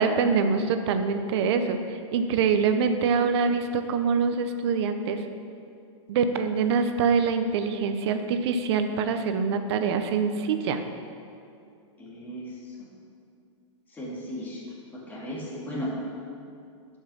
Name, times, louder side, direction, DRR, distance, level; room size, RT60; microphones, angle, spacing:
voice 1, 0.0-5.2 6.1-10.8, right 5 dB, 55° right, 8 dB, 0.8 m, -25 dB
voice 2, 12.0-12.5 12.8-12.9 13.9-14.6 14.9-15.9, equal, 10° left, -6 dB, 2.1 m, -35 dB
11.0 x 5.5 x 6.2 m, 2.5 s
hypercardioid pair, 140°, 16 cm